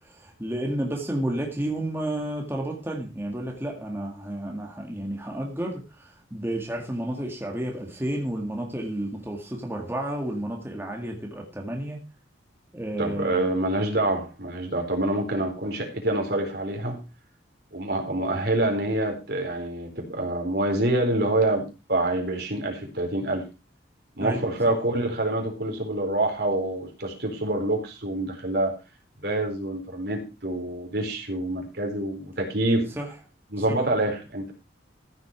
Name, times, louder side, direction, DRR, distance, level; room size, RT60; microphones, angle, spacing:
voice 1, 0.0-12.0 12.7-13.4 24.2-24.4 33.0-33.1 33.7-33.8, right 1 dB, 15° right, 2.1 m, -31 dB
voice 2, 13.0-17.0 17.7-23.4 24.2-28.7 29.2-32.8 33.5-34.5, right 1 dB, 60° right, 4.4 m, -26 dB
15.0 x 8.3 x 4.7 m
head